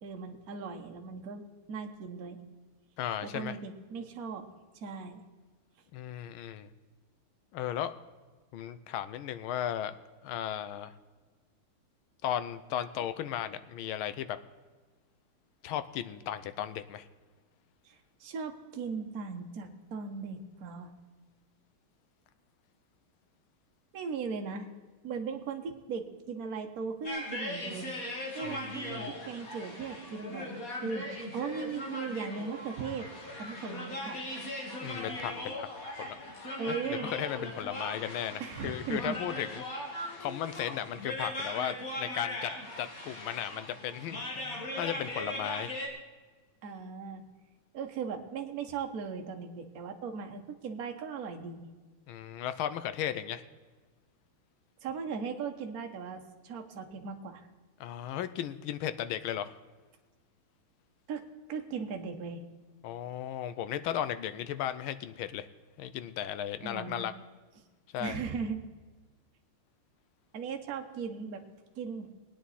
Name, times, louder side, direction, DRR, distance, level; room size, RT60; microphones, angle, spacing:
voice 1, 0.0-2.4 3.2-4.4 4.8-5.2 17.8-20.9 23.9-24.7 25.0-28.0 28.3-33.1 33.4-34.6 36.6-37.1 38.4-39.2 46.6-47.2 47.7-51.7 54.8-57.4 61.1-62.4 66.6-67.1 68.0-68.6 70.3-71.4 71.7-72.1, right 5 dB, 50° right, 4 dB, 1.4 m, -38 dB
voice 2, 3.0-3.6 5.9-6.7 7.5-7.9 8.5-9.9 10.2-10.9 12.2-14.4 15.6-17.1 28.4-29.1 34.8-35.7 36.0-36.2 36.7-39.6 40.2-42.5 42.8-45.8 52.1-53.4 57.8-59.5 62.8-65.5 65.8-67.1 67.9-68.2, left 10 dB, 75° left, 12 dB, 1.4 m, -35 dB
sound 1, 27.0-45.9, left 1 dB, 40° left, 2.4 m, -39 dB
20.0 x 9.3 x 4.2 m, 1.3 s
omnidirectional pair, 2.4 m